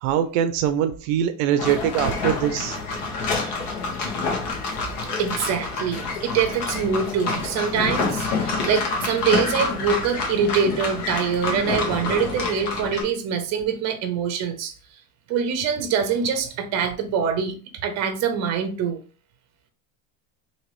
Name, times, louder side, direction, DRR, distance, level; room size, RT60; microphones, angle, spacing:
voice 1, 0.0-2.8, right 10 dB, 80° right, 0.5 m, -23 dB
sound 1, 1.6-13.0, left 4 dB, 60° left, 1.1 m, -27 dB
voice 2, 5.2-14.7 15.3-17.6 17.8-19.0, right 6 dB, 45° right, 0.7 m, -24 dB
2.9 x 2.8 x 3.0 m
cardioid pair, 140°, 39 cm